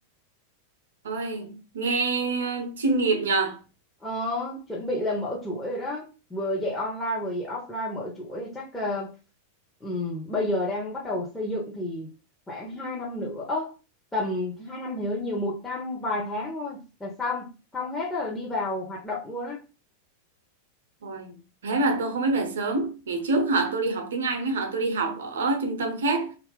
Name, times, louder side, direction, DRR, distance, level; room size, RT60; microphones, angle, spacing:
voice 1, 1.0-3.6 21.0-21.3 21.6-26.4, right 3 dB, 65° right, 0.6 m, -26 dB
voice 2, 4.0-9.1 9.8-12.1 12.5-13.7 14.1-19.6, left 1 dB, 10° left, 0.8 m, -30 dB
2.8 x 2.4 x 3.4 m
figure-of-eight pair, 90°, 0 cm